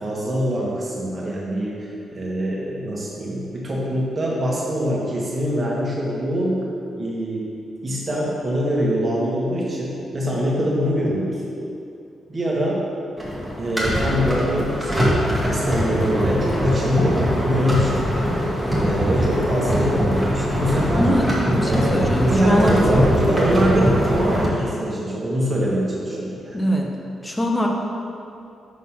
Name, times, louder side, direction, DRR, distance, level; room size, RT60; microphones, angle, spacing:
voice 1, 0.0-6.7 6.9-7.5 7.8-11.4 12.3-12.8 13.6-21.1 21.6-26.6, equal, 35° right, -5 dB, 1.7 m, -24 dB
sound 1, 13.2-24.5, equal, ahead, 1.7 m, -22 dB
voice 2, 20.9-22.8 26.5-26.9 27.2-27.7, equal, 15° left, 0 dB, 0.9 m, -23 dB
6.4 x 4.1 x 5.6 m, 2.6 s
cardioid pair, 100°, 0 cm